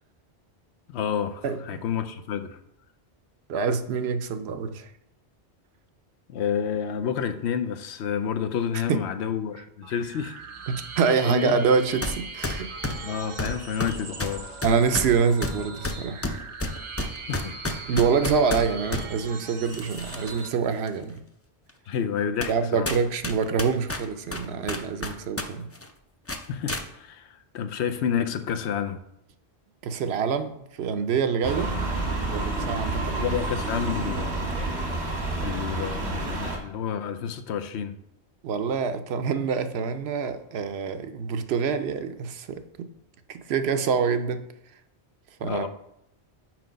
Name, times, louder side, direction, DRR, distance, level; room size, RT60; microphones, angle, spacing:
voice 1, 0.9-2.6 6.3-10.4 11.2-11.6 13.0-14.6 17.3-18.0 21.9-22.9 26.5-29.0 33.2-34.7 35.4-38.0 45.4-45.7, left 8 dB, 80° left, 0.9 m, -30 dB
voice 2, 1.4-1.8 3.5-4.9 8.9-9.0 10.7-12.7 14.6-16.3 17.9-21.2 22.5-25.7 29.8-30.5 30.8-31.7 32.3-33.2 38.4-42.9 43.3-44.4 45.4-45.7, right 5 dB, 70° right, 0.8 m, -26 dB
sound 1, 9.8-20.5, right 4 dB, 40° right, 0.5 m, -40 dB
sound 2, 12.0-12.2 12.4-19.1 19.7-20.5 20.9-21.0 21.7-21.8 22.4-22.6 22.9-25.5 25.7-25.9 26.3-26.8, left 2 dB, 20° left, 0.3 m, -30 dB
sound 3, 31.4-36.6, right 2 dB, 85° right, 1.8 m, -29 dB
6.0 x 4.8 x 5.1 m
omnidirectional pair, 1.1 m